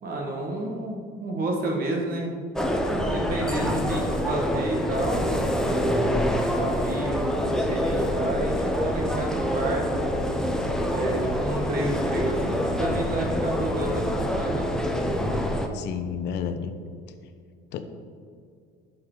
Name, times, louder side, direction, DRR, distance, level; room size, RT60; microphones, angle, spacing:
voice 1, 0.0-2.4 3.1-10.2 10.9-14.8, right 1 dB, 50° right, 0 dB, 1.7 m, -30 dB
sound 1, 2.6-15.7, equal, 5° left, 0.7 m, -26 dB
voice 2, 3.6-3.9 15.7-16.7 17.7-17.8, left 7 dB, 60° left, 9 dB, 0.7 m, -31 dB
11.5 x 4.8 x 3.9 m, 2.2 s
cardioid pair, 120°, 20 cm